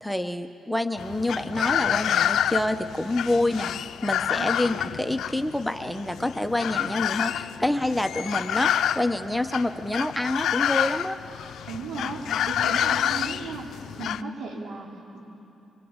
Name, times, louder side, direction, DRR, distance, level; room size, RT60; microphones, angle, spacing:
voice 1, 0.0-3.7 4.0-11.2, left 1 dB, 5° left, 7 dB, 1.1 m, -27 dB
sound 1, 1.0-14.2, left 10 dB, 75° left, 0.5 m, -28 dB
voice 2, 3.3-3.7 11.7-13.7 14.0-15.2, right 3 dB, 75° right, -1 dB, 4.2 m, -36 dB
24.5 x 21.5 x 9.0 m, 2.8 s
supercardioid pair, 60°, 0 cm